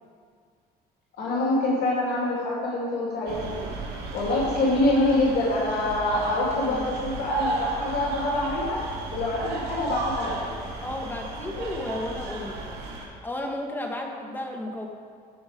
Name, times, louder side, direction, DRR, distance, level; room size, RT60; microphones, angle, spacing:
voice 1, 1.2-3.6 4.1-8.8 9.1-10.5, left 2 dB, 70° left, -5 dB, 2.9 m, -25 dB
sound 1, 3.3-13.1, right 3 dB, 75° right, 2.3 m, -34 dB
voice 2, 6.6-7.3 10.8-12.8 13.2-14.9, left 1 dB, 10° left, 1 dB, 1.5 m, -34 dB
15.0 x 6.0 x 5.2 m, 2.1 s
cardioid pair, 110°, 17 cm